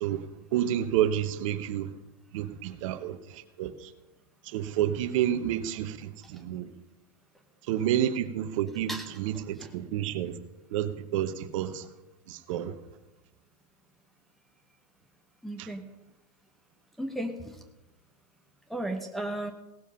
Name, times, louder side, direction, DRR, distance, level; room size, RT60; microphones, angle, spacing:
voice 1, 0.0-1.9 2.3-3.9 4.4-6.7 7.7-10.4 10.7-11.9 12.3-12.7 15.6-15.7, right 11 dB, 55° right, 1.1 m, -30 dB
voice 2, 15.4-15.8 17.0-17.6 18.7-19.5, right 1 dB, ahead, 1.1 m, -34 dB
17.5 x 7.1 x 5.7 m
hypercardioid pair, 135°, 20 cm